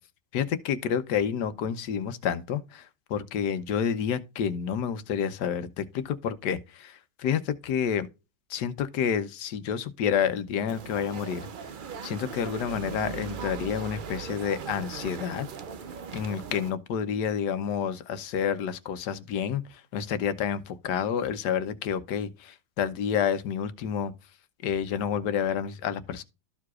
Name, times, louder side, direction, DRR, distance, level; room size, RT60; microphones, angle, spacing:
voice 1, 0.3-2.8 3.1-6.9 7.2-8.1 8.5-11.4 12.0-15.5 16.1-19.6 19.9-24.1 24.6-26.2, left 8 dB, 80° left, 1.4 m, -29 dB
sound 1, 10.7-16.7, right 6 dB, 85° right, 0.4 m, -39 dB
13.5 x 4.7 x 2.4 m
omnidirectional pair, 1.8 m